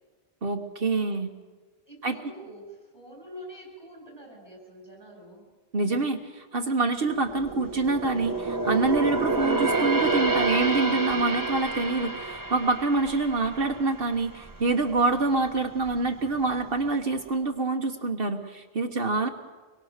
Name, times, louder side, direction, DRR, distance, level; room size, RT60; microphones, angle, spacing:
voice 1, 0.4-1.3 2.0-2.2 5.7-19.3, right 3 dB, 65° right, 4 dB, 1.5 m, -26 dB
voice 2, 1.9-5.5, equal, 25° left, 0 dB, 8.0 m, -46 dB
sound 1, 7.1-14.6 15.0-15.2 15.8-16.5 16.8-16.9, right 3 dB, 20° right, 1.1 m, -28 dB
26.0 x 22.5 x 6.6 m, 1.3 s
omnidirectional pair, 1.0 m